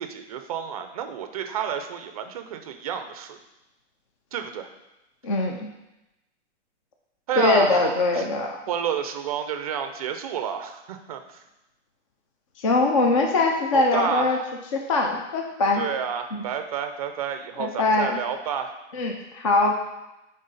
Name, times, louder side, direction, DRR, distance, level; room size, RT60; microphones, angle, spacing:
voice 1, 0.0-3.4 4.3-4.7 7.3-8.3 8.7-11.4 13.7-14.5 15.8-18.7, right 8 dB, 30° right, 7 dB, 0.4 m, -30 dB
voice 2, 5.2-5.7 7.4-8.6 12.6-14.4 14.7-15.8 17.6-18.2 18.9-19.7, left 3 dB, 30° left, 2 dB, 0.4 m, -22 dB
9.5 x 3.6 x 4.0 m, 0.96 s
hypercardioid pair, 165°, 36 cm